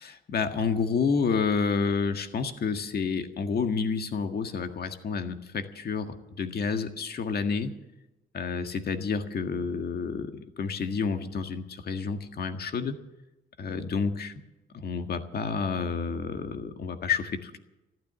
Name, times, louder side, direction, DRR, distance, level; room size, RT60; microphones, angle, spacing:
voice 1, 0.0-7.8 8.3-13.0 13.6-14.3 14.7-17.6, left 5 dB, 50° left, 7 dB, 1.7 m, -29 dB
14.0 x 12.5 x 7.6 m, 0.95 s
cardioid pair, 90°, 20 cm